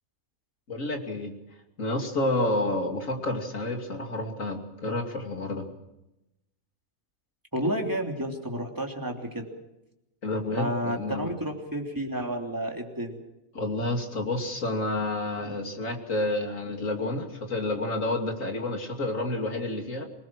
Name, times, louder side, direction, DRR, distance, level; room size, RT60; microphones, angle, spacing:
voice 1, 0.7-1.4 1.8-5.7 10.2-11.3 13.5-20.0, left 2 dB, 65° left, 3 dB, 3.2 m, -29 dB
voice 2, 7.5-9.5 10.5-13.2 15.4-15.6, equal, 15° right, 1 dB, 3.2 m, -31 dB
26.5 x 19.5 x 6.2 m, 0.93 s
omnidirectional pair, 1.5 m